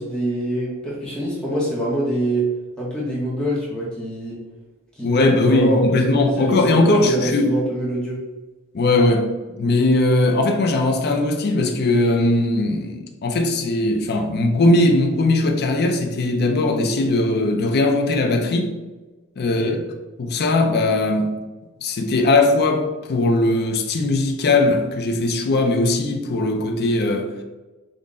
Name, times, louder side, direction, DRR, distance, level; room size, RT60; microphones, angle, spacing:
voice 1, 0.0-2.5 2.8-4.4 5.0-5.9 6.1-8.2 19.6-19.8, right 1 dB, 5° left, 0.8 m, -25 dB
voice 2, 5.0-7.6 8.7-18.7 19.4-19.7 20.2-21.4 21.8-27.3, left 2 dB, 45° left, 0.4 m, -19 dB
3.8 x 2.1 x 3.6 m
head